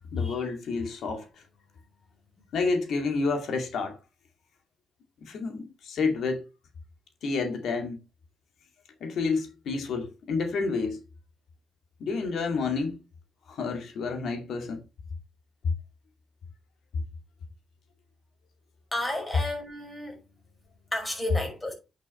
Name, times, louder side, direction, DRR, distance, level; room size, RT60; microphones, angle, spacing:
voice 1, 0.1-1.4 2.5-4.0 5.2-6.5 7.2-8.0 9.0-11.0 12.0-13.0 13.5-14.8, left 4 dB, 70° left, 2.2 m, -29 dB
voice 2, 18.9-20.2 20.9-21.7, left 1 dB, 15° left, 5.3 m, -32 dB
8.7 x 6.3 x 4.3 m
cardioid pair, 90°, 0 cm